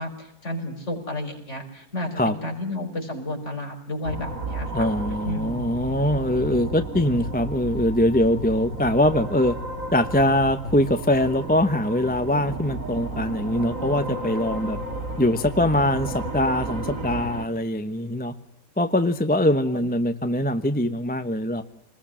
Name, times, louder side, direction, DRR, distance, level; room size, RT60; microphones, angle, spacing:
voice 1, 0.0-4.9 5.2-5.7 19.7-19.9, left 1 dB, 45° left, 2 dB, 5.6 m, -32 dB
sound 1, 4.0-17.5, right 2 dB, 55° right, 2.7 m, -33 dB
voice 2, 4.7-9.6 9.9-14.8 15.2-18.3 18.8-21.6, left 1 dB, 5° left, 9 dB, 0.9 m, -22 dB
27.5 x 20.5 x 7.5 m, 0.73 s
omnidirectional pair, 1.6 m